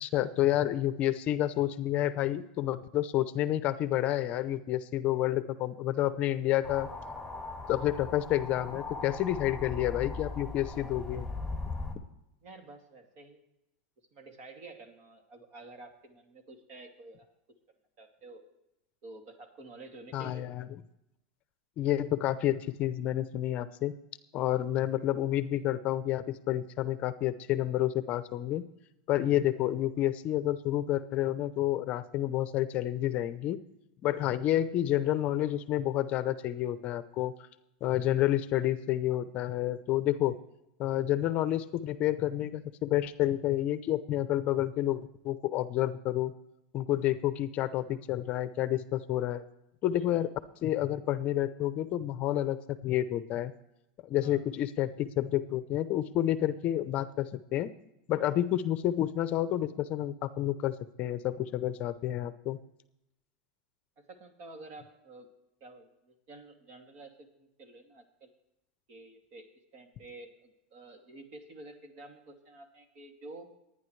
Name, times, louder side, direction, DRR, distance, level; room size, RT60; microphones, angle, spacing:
voice 1, 0.0-6.9 7.7-11.3 20.1-20.7 21.8-23.9 24.3-28.6 29.1-33.6 34.0-37.3 37.8-40.4 40.8-46.3 46.7-49.4 49.8-50.3 50.6-53.5 54.0-57.7 58.1-62.6, left 13 dB, 40° left, 13 dB, 0.7 m, -29 dB
sound 1, 6.6-12.0, left 3 dB, 10° right, 2.4 m, -39 dB
voice 2, 12.4-13.4 14.1-17.6 18.0-18.5 19.0-20.4 50.0-50.2 54.2-54.4 64.0-65.3 65.6-68.3 68.9-73.5, right 2 dB, 50° right, 5 dB, 2.4 m, -50 dB
25.0 x 9.8 x 3.2 m, 0.88 s
supercardioid pair, 135°, 4 cm